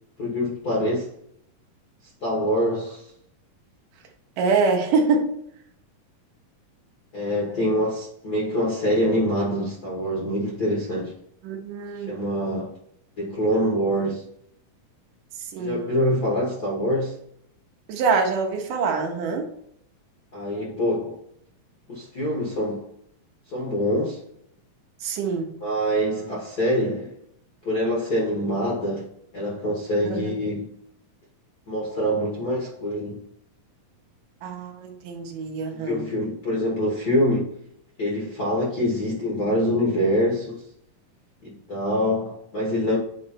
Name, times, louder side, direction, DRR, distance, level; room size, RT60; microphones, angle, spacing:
voice 1, 0.2-1.1 2.2-3.0 7.1-11.1 12.1-12.7 13.2-14.2 15.6-17.1 20.3-21.2 21.9-22.8 23.5-24.2 25.6-27.1 27.6-29.0 29.3-30.7 31.7-33.2 35.7-37.4 38.0-40.6 41.4-43.0, equal, 45° left, 1.4 m, -25 dB
voice 2, 4.4-5.4 11.4-12.2 15.5-15.9 17.9-19.5 25.0-25.6 30.0-30.3 34.4-36.0, right 4 dB, 75° right, 2.5 m, -25 dB
8.6 x 3.2 x 4.4 m
omnidirectional pair, 3.9 m